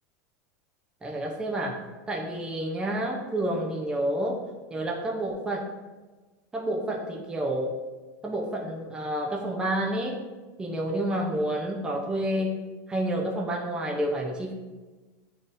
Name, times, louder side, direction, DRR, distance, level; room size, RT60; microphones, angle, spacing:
voice 1, 1.0-4.4 4.7-5.7 6.5-7.8 8.2-10.2 10.6-12.6 12.9-14.5, right 1 dB, 10° right, -1 dB, 0.6 m, -29 dB
9.0 x 4.1 x 2.6 m, 1.2 s
supercardioid pair, 155°, 10 cm